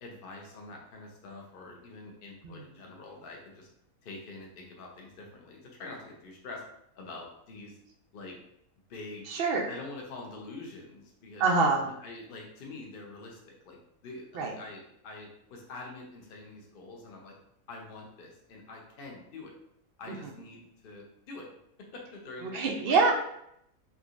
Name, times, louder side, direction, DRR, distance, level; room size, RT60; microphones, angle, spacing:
voice 1, 0.0-3.7 4.0-6.6 6.9-7.8 8.1-8.4 8.9-9.4 9.7-11.5 11.8-13.8 14.0-17.3 17.7-19.5 20.0-21.5 21.9-23.0, left 3 dB, 50° left, 0 dB, 0.7 m, -45 dB
voice 2, 9.3-9.7 11.4-11.9 14.3-14.5 22.4-23.1, right 4 dB, 80° right, 1 dB, 0.5 m, -25 dB
3.7 x 2.9 x 2.4 m, 0.76 s
omnidirectional pair, 1.6 m